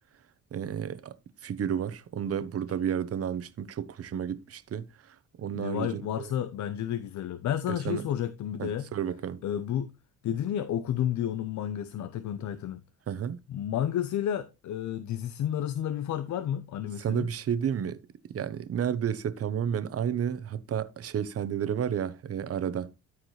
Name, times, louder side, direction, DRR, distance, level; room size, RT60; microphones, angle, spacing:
voice 1, 0.5-1.1 1.4-6.3 7.7-8.1 8.6-9.4 13.1-13.4 17.0-18.0 18.3-22.9, right 8 dB, 50° right, 1.0 m, -31 dB
voice 2, 5.5-8.9 9.4-9.9 10.2-12.8 13.5-17.3, left 10 dB, 70° left, 0.7 m, -31 dB
13.0 x 4.8 x 3.2 m
cardioid pair, 90°, 30 cm